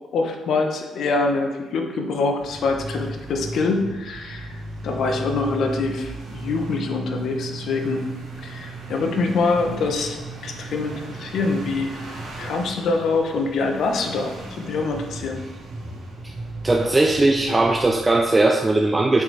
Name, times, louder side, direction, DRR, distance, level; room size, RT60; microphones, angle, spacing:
voice 1, 0.1-4.6 4.8-8.0 8.4-12.1 12.4-15.4, left 3 dB, 70° left, 3 dB, 1.0 m, -25 dB
sound 1, 2.4-18.2, right 2 dB, 80° right, 2.3 m, -35 dB
voice 2, 16.6-19.2, right 2 dB, 20° right, 3 dB, 0.5 m, -19 dB
7.3 x 4.4 x 4.7 m, 1.3 s
cardioid pair, 90°, 0 cm